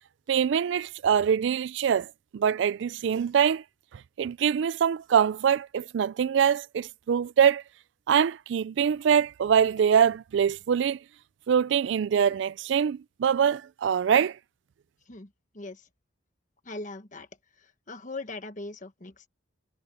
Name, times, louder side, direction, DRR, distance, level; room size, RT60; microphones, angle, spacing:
voice 1, 0.3-3.6 4.2-7.6 8.1-11.0 11.5-14.4, right 8 dB, 65° right, 0.3 m, -24 dB
voice 2, 15.1-15.9 16.6-17.3 17.6-19.3, left 2 dB, 40° left, 1.4 m, -40 dB
head